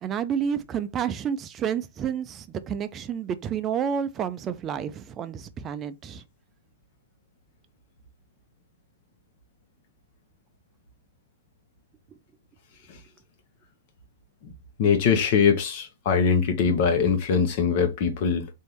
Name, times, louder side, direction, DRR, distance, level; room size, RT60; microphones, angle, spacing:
voice 1, 0.0-6.2, right 8 dB, 25° right, 0.5 m, -30 dB
voice 2, 14.8-18.5, left 6 dB, 45° left, 1.2 m, -22 dB
3.3 x 2.7 x 4.4 m
hypercardioid pair, 135°, 0 cm